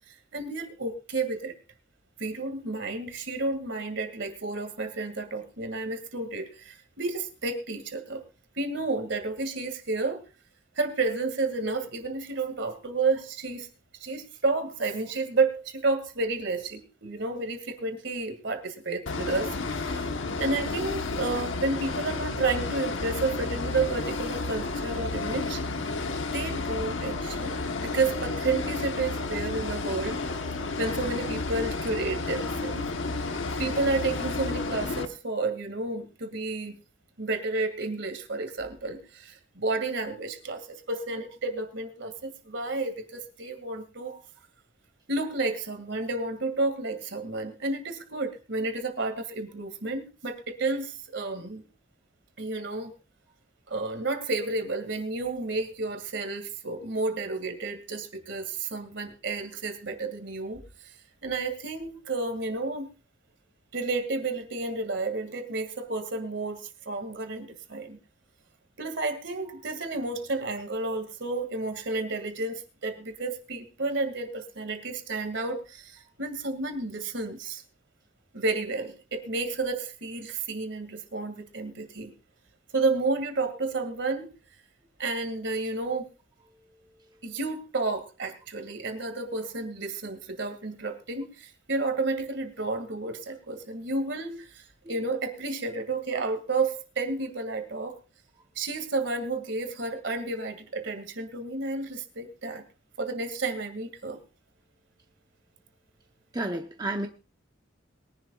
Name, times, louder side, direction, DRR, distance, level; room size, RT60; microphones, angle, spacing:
voice 1, 0.1-1.5 2.2-8.2 8.6-10.2 10.8-13.7 14.0-20.1 20.4-25.6 26.3-30.2 30.8-32.9 33.6-36.8 37.2-44.2 45.1-51.7 52.4-52.9 53.7-60.9 61.2-62.9 63.7-68.0 68.8-77.6 78.3-82.1 82.7-84.3 85.0-86.1 87.2-98.0 98.6-102.6 103.0-104.2, right 3 dB, 60° right, 2.2 m, -31 dB
sound 1, 19.1-35.1, left 3 dB, 75° left, 1.2 m, -31 dB
voice 2, 106.3-107.1, right 2 dB, 20° right, 0.8 m, -30 dB
22.0 x 11.0 x 2.4 m
head